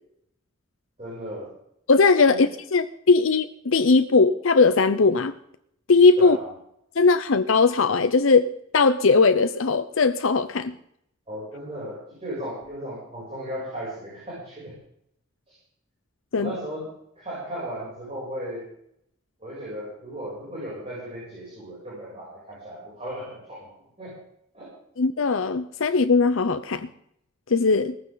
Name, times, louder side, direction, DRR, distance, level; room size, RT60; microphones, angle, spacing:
voice 1, 1.0-1.5 2.3-2.4 6.2-6.5 11.3-14.7 15.5-15.6 16.4-16.9 17.2-18.7 19.4-24.2 24.5-24.7, equal, 30° right, -7 dB, 7.7 m, -36 dB
voice 2, 1.9-5.3 5.9-6.4 7.0-10.7 16.3-16.5 25.0-26.9 27.5-28.0, left 4 dB, 70° left, 10 dB, 0.7 m, -19 dB
18.0 x 15.0 x 4.0 m, 0.72 s
head